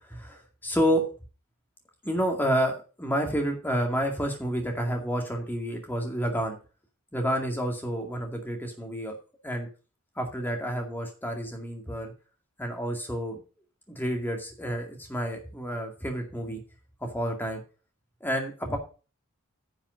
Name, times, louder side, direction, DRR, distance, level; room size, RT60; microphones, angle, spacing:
voice 1, 0.1-1.0 2.0-6.6 7.1-9.2 9.4-9.7 10.2-12.1 12.6-13.4 13.9-16.6 17.0-17.6 18.2-18.8, equal, 10° left, 2 dB, 2.2 m, -29 dB
10.0 x 5.6 x 6.5 m, 0.35 s
head